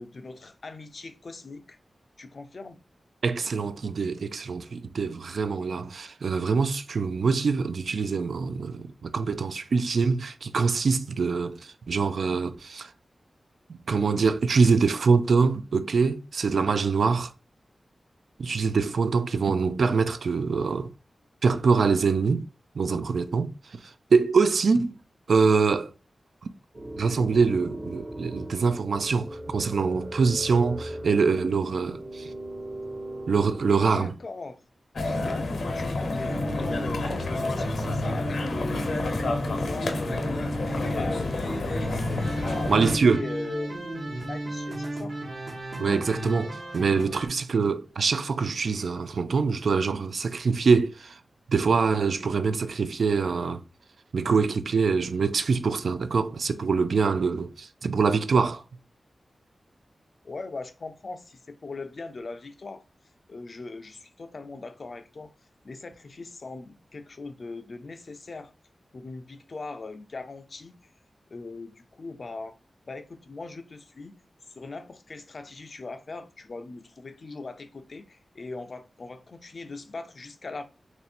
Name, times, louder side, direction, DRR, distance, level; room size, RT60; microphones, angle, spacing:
voice 1, 0.0-1.8 2.2-2.8 33.8-34.6 35.2-38.9 39.2-41.3 41.8-43.8 44.2-45.2 60.2-62.8 63.3-65.3 65.6-68.5 68.9-70.8 71.3-72.5 72.9-74.2 74.5-80.6, left 3 dB, 55° left, 0.4 m, -40 dB
voice 2, 3.2-12.9 13.9-17.3 18.4-20.9 21.4-22.4 22.8-23.5 24.1-24.9 25.3-25.9 27.0-32.3 33.3-34.1 42.7-43.2 45.8-51.2 51.5-53.6 54.1-58.6, right 5 dB, 80° right, 0.3 m, -24 dB
sound 1, 26.7-34.1, right 1 dB, 30° right, 0.8 m, -38 dB
sound 2, 35.0-43.0, left 2 dB, 85° left, 0.7 m, -29 dB
sound 3, 36.3-47.3, right 1 dB, 60° right, 1.0 m, -34 dB
3.0 x 2.6 x 4.2 m
wide cardioid pair, 105°, 0 cm